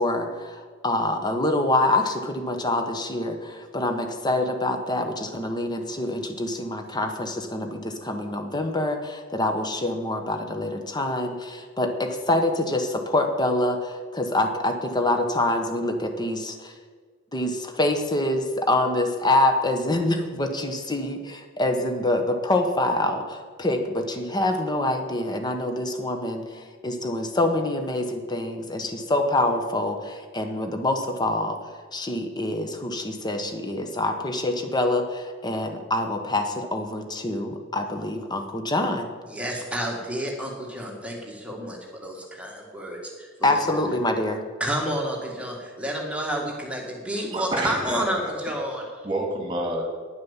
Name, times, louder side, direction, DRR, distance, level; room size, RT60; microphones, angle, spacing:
voice 1, 0.0-16.7 17.3-31.6 31.9-39.1 43.4-44.4, left 1 dB, 20° left, 5 dB, 1.1 m, -26 dB
voice 2, 39.3-43.6 44.6-49.1, equal, 5° right, -1 dB, 1.9 m, -30 dB
voice 3, 47.3-48.3 49.0-49.8, right 1 dB, 25° right, 2 dB, 2.4 m, -28 dB
10.5 x 7.5 x 7.2 m, 1.5 s
head